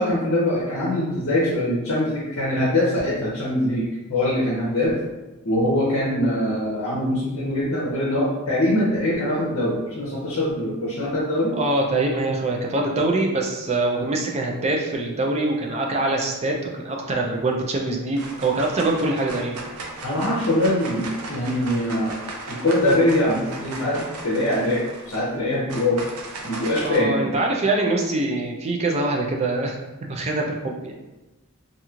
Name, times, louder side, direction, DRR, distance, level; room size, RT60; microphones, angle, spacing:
voice 1, 0.0-5.0 5.4-11.5 20.0-22.2 22.5-24.8 25.1-26.0 26.4-27.3, left 1 dB, 65° left, -7 dB, 0.7 m, -23 dB
voice 2, 11.6-19.6 26.8-29.8 30.1-30.9, right 2 dB, 30° right, 0 dB, 0.4 m, -24 dB
sound 1, 17.4-17.8 18.1-27.0, right 2 dB, 85° right, 0.5 m, -36 dB
2.9 x 2.6 x 2.4 m, 1.1 s
head